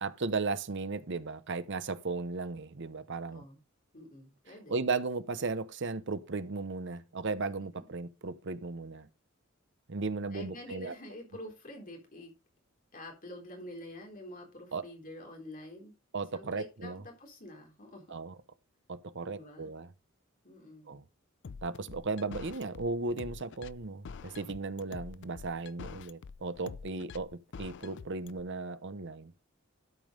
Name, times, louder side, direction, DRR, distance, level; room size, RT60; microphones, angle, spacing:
voice 1, 0.0-3.4 4.7-9.1 9.9-10.9 14.7-14.8 16.1-17.0 18.1-18.4 18.9-19.9 20.9-21.0 21.6-27.3 27.6-29.3, right 3 dB, 60° right, 0.9 m, -36 dB
voice 2, 3.9-4.8 10.3-12.3 12.9-15.9 16.3-18.2 19.2-19.7 20.4-21.0, left 1 dB, 45° left, 3.8 m, -47 dB
sound 1, 21.4-28.4, left 5 dB, 60° left, 0.5 m, -46 dB
12.5 x 5.4 x 5.2 m
head